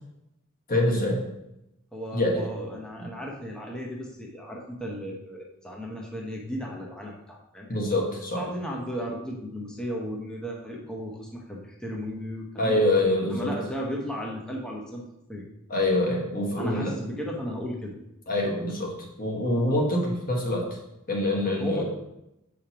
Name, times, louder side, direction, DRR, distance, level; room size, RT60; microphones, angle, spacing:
voice 1, 0.7-1.2 2.1-2.5 7.7-8.4 12.6-13.5 15.7-16.9 18.3-18.9 19.2-20.7 21.1-21.8, left 1 dB, 45° left, -1 dB, 1.5 m, -25 dB
voice 2, 1.9-8.0 8.4-12.8 13.3-15.0 15.3-15.4 16.6-17.9 21.6-21.8, equal, 5° left, -2 dB, 0.8 m, -35 dB
7.1 x 5.1 x 2.9 m, 0.87 s
head